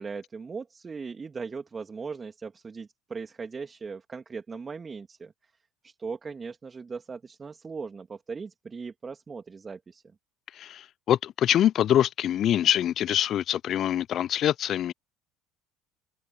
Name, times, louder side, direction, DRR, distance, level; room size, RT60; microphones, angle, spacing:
voice 1, 0.0-5.5 5.8-10.0, right 5 dB, 25° right, 3.0 m, -39 dB
voice 2, 11.1-14.9, left 11 dB, 50° left, 0.5 m, -24 dB
hypercardioid pair, 70°, 0 cm